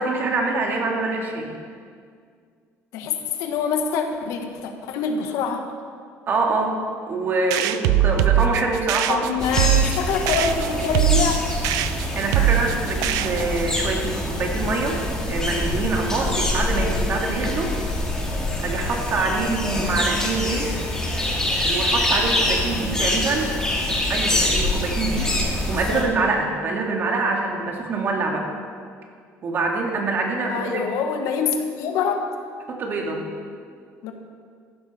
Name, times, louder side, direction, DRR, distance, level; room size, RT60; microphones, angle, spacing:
voice 1, 0.0-1.5 6.3-6.8 7.1-9.2 12.1-15.0 15.3-17.8 18.6-20.7 21.6-23.5 24.1-25.3 25.7-28.5 29.4-30.8 32.7-33.2, right 3 dB, 40° right, 1 dB, 2.1 m, -25 dB
voice 2, 2.9-5.7 9.1-11.4 23.7-23.9 25.6-26.0 30.5-32.3 34.0-34.1, left 6 dB, 75° left, 4 dB, 1.5 m, -25 dB
sound 1, 7.5-13.7, right 11 dB, 90° right, 0.6 m, -22 dB
sound 2, 9.4-26.0, left 1 dB, 10° left, 2.4 m, -25 dB
14.5 x 12.5 x 4.3 m, 2.1 s
cardioid pair, 150°, 6 cm